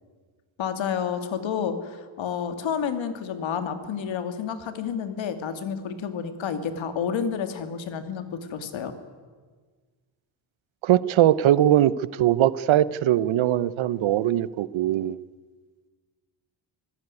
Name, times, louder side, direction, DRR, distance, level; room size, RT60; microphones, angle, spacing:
voice 1, 0.6-8.9, left 7 dB, 75° left, 9 dB, 2.4 m, -30 dB
voice 2, 10.8-15.2, right 12 dB, 80° right, 18 dB, 0.9 m, -21 dB
24.5 x 15.5 x 9.7 m, 1.5 s
wide cardioid pair, 165°, 46 cm